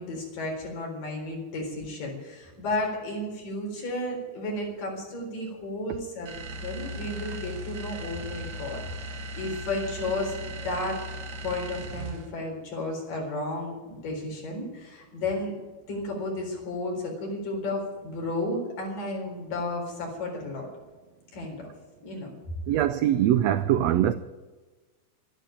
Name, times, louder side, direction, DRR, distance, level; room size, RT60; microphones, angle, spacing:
voice 1, 0.0-11.0 11.4-15.5 15.9-20.7 21.3-21.7 22.0-22.3, left 2 dB, 85° left, 5.8 m, -33 dB
sound 1, 6.3-12.4, equal, 55° right, 1.4 m, -37 dB
voice 2, 22.7-24.1, right 11 dB, 85° right, 1.5 m, -22 dB
12.5 x 11.5 x 8.9 m
omnidirectional pair, 3.7 m